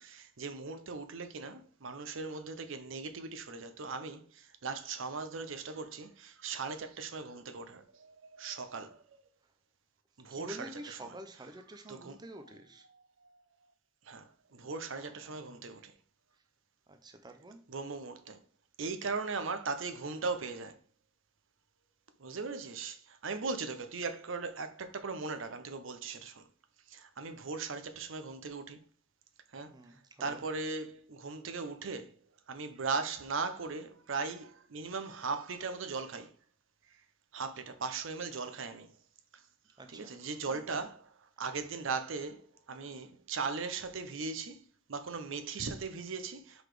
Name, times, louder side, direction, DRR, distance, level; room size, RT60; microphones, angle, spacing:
voice 1, 0.0-9.2 10.2-10.6 11.0-11.1 11.9-12.1 14.1-14.3 14.5-15.9 17.7-18.4 18.8-20.7 22.2-26.4 26.9-28.8 29.5-29.7 30.2-32.1 32.5-36.3 37.3-38.9 39.9-41.0 41.4-44.6 44.9-46.6, right 4 dB, 70° right, 0.7 m, -38 dB
voice 2, 10.3-12.9 14.6-14.8 15.0-15.7 16.9-17.6 29.7-30.4 39.8-40.2 40.5-40.8, right 1 dB, 20° right, 0.6 m, -49 dB
4.9 x 4.0 x 4.9 m
head